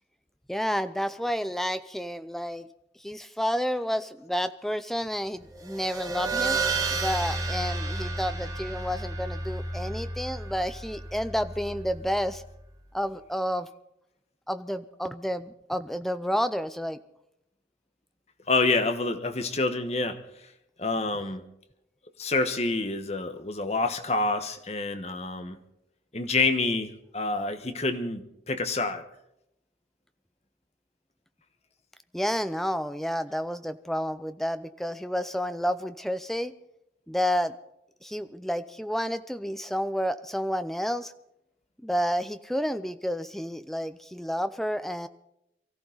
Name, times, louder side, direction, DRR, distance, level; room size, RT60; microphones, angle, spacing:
voice 1, 0.5-2.7 3.0-6.6 6.9-12.4 12.9-13.7 14.5-17.0 32.1-36.5 37.1-37.6 38.0-41.1 41.8-45.1, equal, ahead, 11 dB, 0.5 m, -30 dB
sound 1, 5.5-12.6, right 3 dB, 20° right, 1.6 m, -32 dB
voice 2, 18.5-20.2 20.8-21.4 22.2-25.6 26.1-29.0, left 3 dB, 35° left, 8 dB, 1.2 m, -27 dB
23.5 x 14.5 x 4.0 m, 0.82 s
head